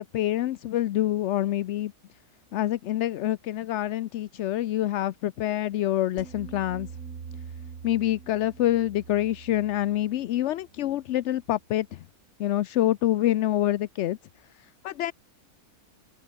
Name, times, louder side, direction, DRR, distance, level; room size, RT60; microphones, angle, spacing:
voice 1, 0.0-1.9 2.5-6.9 7.8-12.0 12.4-14.2 14.8-15.1, left 13 dB, 65° left, 0.7 m, -26 dB
sound 1, 6.2-11.4, right 6 dB, 60° right, 1.9 m, -44 dB
open air
omnidirectional pair, 1.6 m